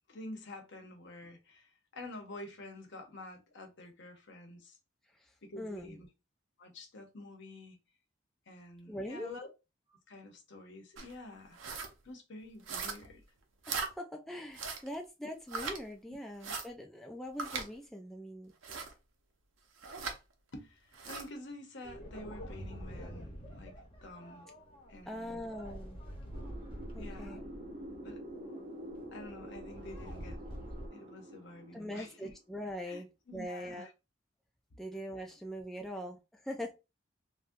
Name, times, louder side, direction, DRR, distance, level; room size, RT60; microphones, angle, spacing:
voice 1, 0.1-4.8 5.4-6.1 6.6-7.8 8.5-9.5 9.9-11.6 12.0-13.2 16.1-16.2 20.5-24.5 24.9-25.5 27.0-27.4 28.0-28.2 29.1-30.4 30.9-32.3 32.9-33.9 34.7-34.8 35.2-35.3 35.8-35.9, left 1 dB, 65° left, 0.8 m, -49 dB
voice 2, 5.6-6.0 8.9-9.4 13.7-18.5 25.1-26.0 26.9-27.4 31.7-33.1 33.3-33.9 34.8-36.7, equal, ahead, 0.3 m, -42 dB
sound 1, 11.0-11.1 11.5-11.9 12.7-13.2 13.6-13.9 14.5-14.9 15.5-15.8 16.4-16.7 17.4-17.7 18.6-18.9 19.8-20.2 20.9-21.3, right 5 dB, 80° right, 0.6 m, -39 dB
sound 2, 21.8-30.9, equal, 30° left, 0.8 m, -47 dB
sound 3, 26.3-32.5, right 1 dB, 35° right, 0.6 m, -47 dB
3.6 x 2.2 x 2.5 m
head